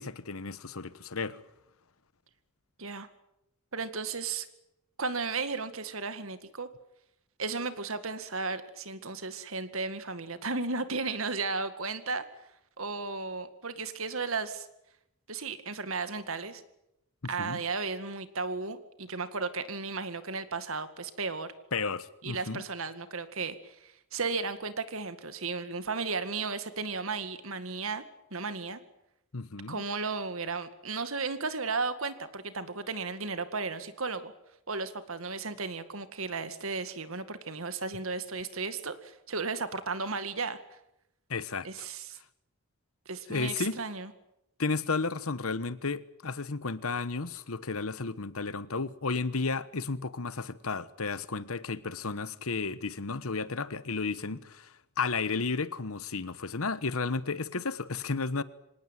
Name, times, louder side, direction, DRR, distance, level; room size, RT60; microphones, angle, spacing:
voice 1, 0.0-1.4 17.2-17.6 21.7-22.6 29.3-29.8 41.3-41.7 43.3-43.8 44.6-58.4, left 4 dB, 80° left, 1.2 m, -33 dB
voice 2, 3.7-4.5 5.0-6.7 7.4-12.2 12.8-14.7 15.3-16.6 17.3-21.5 22.2-28.0 28.3-28.8 29.7-34.3 34.7-40.6 41.6-42.2 43.1-44.1, right 4 dB, 70° right, 2.1 m, -34 dB
25.5 x 18.5 x 9.3 m
head